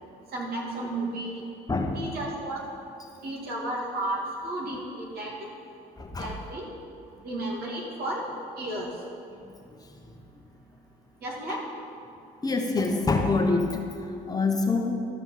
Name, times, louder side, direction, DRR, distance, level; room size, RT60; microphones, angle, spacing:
voice 1, 0.3-1.4 1.9-2.7 3.2-5.3 6.2-6.6 7.2-8.9 11.2-11.6, right 1 dB, 65° right, -3 dB, 2.7 m, -33 dB
voice 2, 6.0-6.3 10.0-10.1 11.5-11.6 12.4-14.9, left 3 dB, 20° left, 2 dB, 1.1 m, -26 dB
13.0 x 5.2 x 7.5 m, 2.5 s
cardioid pair, 110°, 17 cm